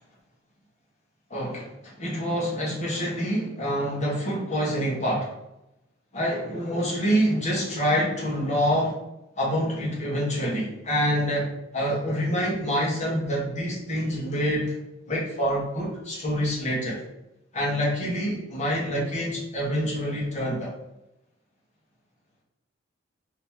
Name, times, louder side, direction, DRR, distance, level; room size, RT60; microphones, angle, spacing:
voice 1, 1.3-5.3 6.1-9.0 9.3-14.7 15.1-17.0 17.5-20.7, equal, 35° left, -4 dB, 1.3 m, -26 dB
3.9 x 2.9 x 3.5 m, 0.89 s
head